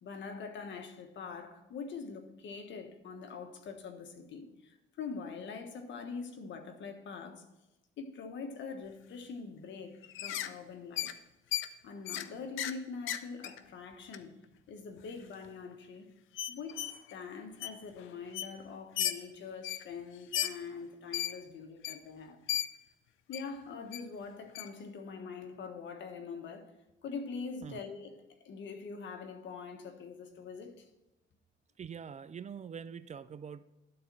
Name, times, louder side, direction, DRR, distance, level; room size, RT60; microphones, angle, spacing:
voice 1, 0.0-7.5 8.0-11.1 11.8-14.3 14.7-16.1 16.5-22.4 23.3-26.7 27.0-30.9, left 5 dB, 70° left, 1.3 m, -44 dB
sound 1, 10.0-10.5 11.0-11.1 11.5-11.7 12.1-12.3 12.6-12.8 13.1-13.6 14.1-14.2 15.0-15.1 15.4-15.5 16.4-17.1 17.6-17.7 18.0-18.1 18.3-18.5 19.0-19.2 19.6-19.8 20.3-20.5 21.1-21.3 21.8-22.0 22.5-22.7 23.3-23.4 23.9-24.0 24.5-24.7, left 12 dB, 85° left, 0.5 m, -35 dB
voice 2, 31.8-33.6, right 7 dB, 35° right, 0.4 m, -44 dB
12.0 x 4.2 x 6.2 m
cardioid pair, 90°, 20 cm